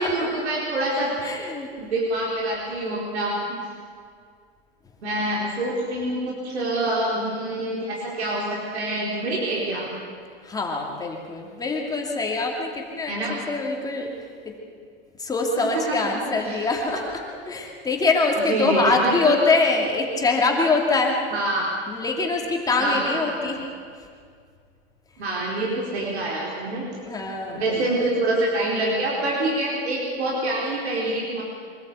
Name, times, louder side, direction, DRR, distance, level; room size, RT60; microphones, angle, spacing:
voice 1, 0.0-1.1 1.8-3.6 5.0-9.9 13.1-13.4 15.6-16.0 16.3-17.0 18.5-19.3 21.3-21.7 22.8-23.5 25.2-26.8 27.5-31.4, right 1 dB, 90° right, -3 dB, 4.4 m, -26 dB
voice 2, 1.2-1.7 10.4-14.1 14.4-14.5 15.2-21.2 21.9-23.7 27.0-27.8, left 3 dB, 10° left, 0 dB, 2.5 m, -24 dB
24.0 x 13.5 x 8.4 m, 2.1 s
hypercardioid pair, 140°, 32 cm